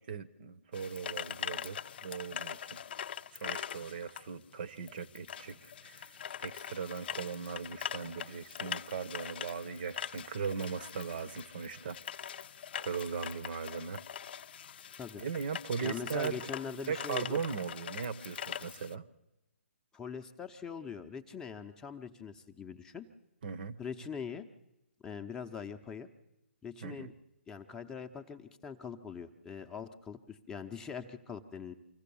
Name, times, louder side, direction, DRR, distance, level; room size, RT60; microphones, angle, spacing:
voice 1, 0.0-2.8 3.3-12.4 12.8-14.0 15.2-16.5 16.9-19.1 23.4-23.8 26.8-27.1, right 6 dB, 45° right, 15 dB, 0.9 m, -39 dB
sound 1, 0.7-18.9, left 9 dB, 50° left, 0.6 m, -43 dB
voice 2, 15.8-17.4 19.9-23.1 23.8-24.5 25.0-26.1 26.6-27.1 27.5-31.7, left 6 dB, 10° left, 5 dB, 0.8 m, -42 dB
25.5 x 15.0 x 7.1 m, 0.98 s
figure-of-eight pair, 140°, 7 cm